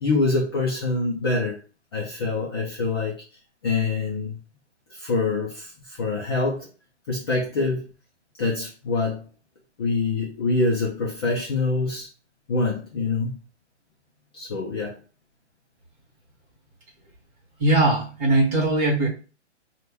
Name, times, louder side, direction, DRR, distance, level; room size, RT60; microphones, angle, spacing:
voice 1, 0.0-1.6 1.9-3.2 3.6-4.4 4.9-6.7 7.1-7.9 8.4-9.3 9.8-12.1 12.5-13.4 14.3-15.0, left 3 dB, 20° left, -3 dB, 0.5 m, -25 dB
voice 2, 17.6-19.1, right 2 dB, 20° right, -1 dB, 1.3 m, -20 dB
5.6 x 2.3 x 3.4 m, 0.34 s
hypercardioid pair, 150°, 35 cm